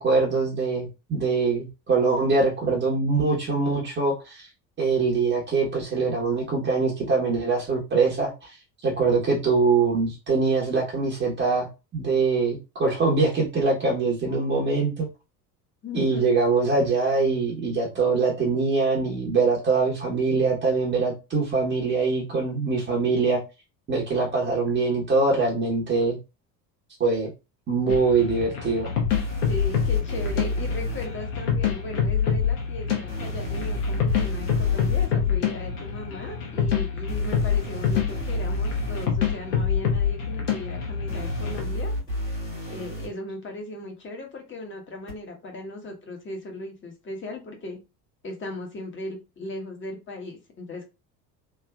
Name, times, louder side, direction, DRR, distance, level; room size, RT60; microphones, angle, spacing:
voice 1, 0.0-4.5 4.8-11.7 11.9-15.1 15.9-23.4 23.9-26.2 27.0-27.3 27.7-28.9, right 4 dB, 25° right, 1.0 m, -23 dB
voice 2, 15.8-16.3 29.5-41.9 42.7-47.8 48.2-50.8, left 1 dB, 25° left, 1.2 m, -37 dB
sound 1, 27.9-41.6, left 7 dB, 65° left, 1.3 m, -26 dB
sound 2, 29.1-31.1 33.1-35.1 37.1-39.1 41.1-43.1 45.1-45.2, equal, 85° left, 1.5 m, -31 dB
3.3 x 2.6 x 2.3 m
figure-of-eight pair, 65°, 48 cm